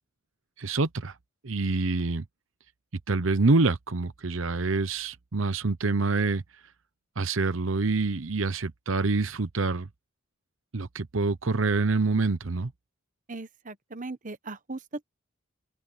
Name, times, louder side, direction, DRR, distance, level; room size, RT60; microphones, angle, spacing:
voice 1, 0.6-1.1 1.4-2.2 3.1-6.4 7.2-9.9 10.7-12.7, right 3 dB, 75° right, 0.9 m, -26 dB
voice 2, 13.3-15.1, right 3 dB, 40° right, 1.1 m, -38 dB
open air
head